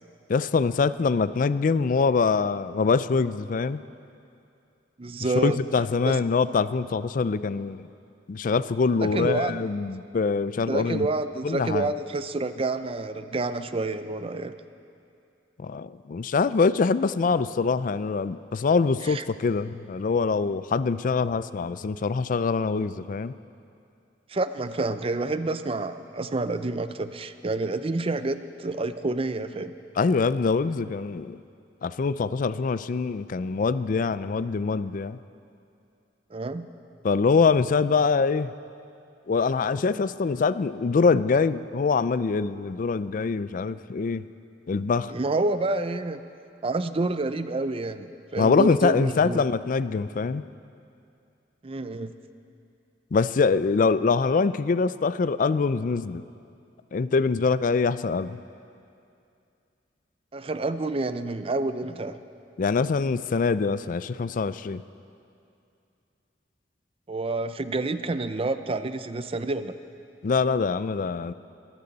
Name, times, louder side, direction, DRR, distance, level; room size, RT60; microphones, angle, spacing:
voice 1, 0.3-3.8 5.4-7.9 8.3-11.1 11.4-11.9 15.6-23.3 30.0-31.4 31.8-35.2 37.0-38.5 39.3-44.3 44.7-45.1 48.4-50.4 53.1-56.2 56.9-58.4 62.6-64.8 70.2-71.3, left 4 dB, 50° left, 15 dB, 0.4 m, -24 dB
voice 2, 5.0-5.6 6.0-6.2 8.9-9.7 10.7-14.6 19.1-19.2 24.3-29.7 36.3-36.7 45.1-46.2 46.6-49.4 51.6-52.1 60.3-62.2 67.1-69.8, right 2 dB, 30° right, 11 dB, 0.5 m, -28 dB
21.5 x 15.0 x 4.1 m, 2.5 s
head